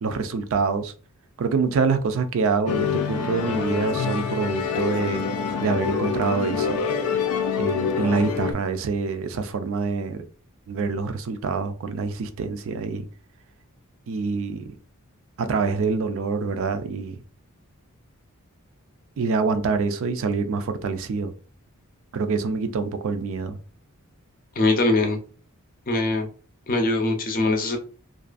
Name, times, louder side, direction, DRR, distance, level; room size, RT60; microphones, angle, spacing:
voice 1, 0.0-0.9 1.4-5.3 5.6-6.8 7.5-10.2 10.7-13.1 14.1-14.7 15.4-17.2 19.2-21.3 22.1-23.6, right 4 dB, 65° right, 0.4 m, -26 dB
Musical instrument, 2.7-8.5, left 6 dB, 90° left, 0.4 m, -26 dB
voice 2, 24.6-25.2 25.9-26.3 26.7-27.8, left 2 dB, 40° left, 0.5 m, -22 dB
2.4 x 2.3 x 2.4 m
head